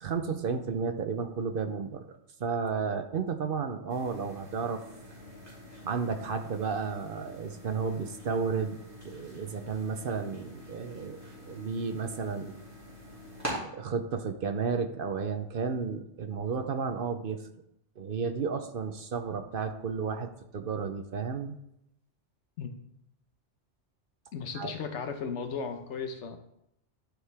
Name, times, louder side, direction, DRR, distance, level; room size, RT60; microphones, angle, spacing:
voice 1, 0.0-4.8 5.8-8.8 9.0-11.2 11.5-12.6 13.7-17.4 18.0-21.6 24.5-24.7, right 5 dB, 55° right, 7 dB, 0.7 m, -32 dB
sound 1, 3.9-13.5, equal, 15° right, 2.6 m, -45 dB
voice 2, 24.3-26.4, left 5 dB, 75° left, 7 dB, 1.1 m, -35 dB
11.5 x 4.7 x 3.4 m, 0.78 s
omnidirectional pair, 1.2 m